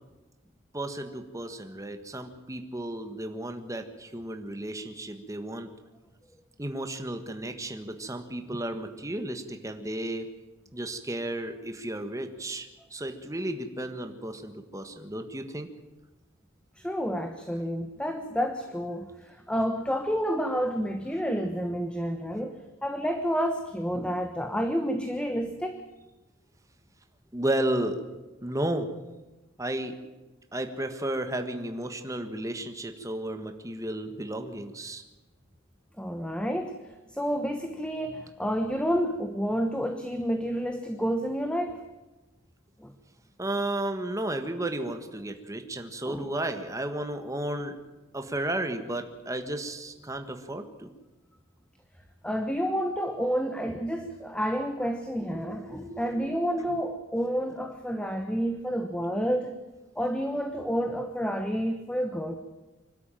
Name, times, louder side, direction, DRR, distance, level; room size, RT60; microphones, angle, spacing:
voice 1, 0.7-5.7 6.6-10.3 10.7-15.7 27.3-28.0 28.4-28.9 29.6-29.9 30.5-35.0 43.4-47.7 48.1-50.9 55.2-56.7, right 1 dB, 15° right, 7 dB, 1.4 m, -33 dB
voice 2, 16.8-25.8 36.0-41.8 42.8-42.9 46.1-46.4 52.2-59.6 60.0-62.4, equal, 5° left, 6 dB, 1.1 m, -30 dB
25.0 x 12.5 x 9.1 m, 1.1 s
head